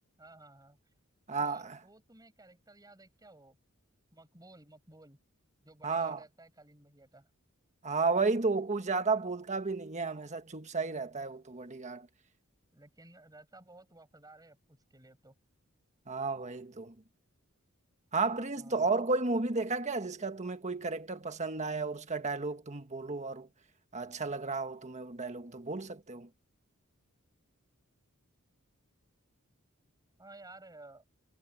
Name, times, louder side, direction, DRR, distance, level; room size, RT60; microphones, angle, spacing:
voice 1, 0.2-0.9 1.3-3.6 4.1-5.2 5.6-7.3 12.7-15.4 18.6-18.9 30.2-31.0, right 2 dB, 15° right, 7.0 m, -55 dB
voice 2, 1.3-1.8 5.8-6.2 7.8-12.1 16.1-16.9 18.1-23.5 23.9-26.3, right 3 dB, 35° right, 1.5 m, -33 dB
head